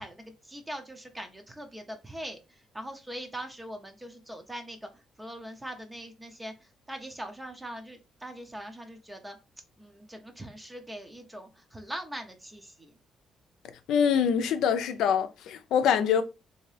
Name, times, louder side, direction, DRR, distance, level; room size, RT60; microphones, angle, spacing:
voice 1, 0.0-2.4 2.7-4.9 5.2-6.5 6.9-9.4 9.8-12.9, equal, 10° right, 0.6 m, -41 dB
voice 2, 13.9-16.2, left 7 dB, 80° left, 0.5 m, -24 dB
3.5 x 2.7 x 3.2 m
cardioid pair, 90°, 0 cm